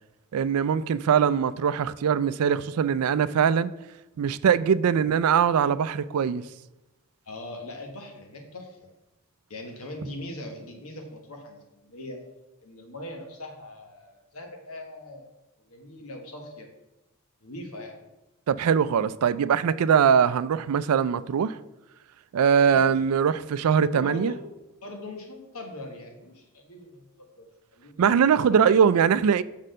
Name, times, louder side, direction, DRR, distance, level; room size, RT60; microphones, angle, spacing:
voice 1, 0.3-3.7 4.2-6.4 18.5-21.6 22.3-24.3 28.0-29.4, right 7 dB, 90° right, 0.4 m, -22 dB
voice 2, 7.2-8.9 9.5-12.2 12.6-15.3 15.7-16.7 17.4-18.0 22.6-23.0 23.9-24.5 24.8-28.0 28.5-28.6, left 1 dB, 90° left, 1.5 m, -41 dB
6.2 x 4.2 x 6.4 m
head